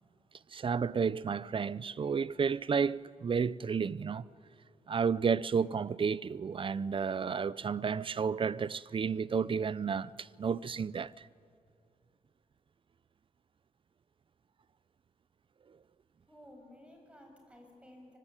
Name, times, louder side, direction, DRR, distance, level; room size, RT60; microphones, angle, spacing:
voice 1, 0.5-4.2 4.9-11.3, right 6 dB, 40° right, 0.6 m, -32 dB
voice 2, 16.3-18.2, left 1 dB, 10° right, 7.4 m, -55 dB
25.0 x 24.5 x 9.1 m
cardioid pair, 100°, 13 cm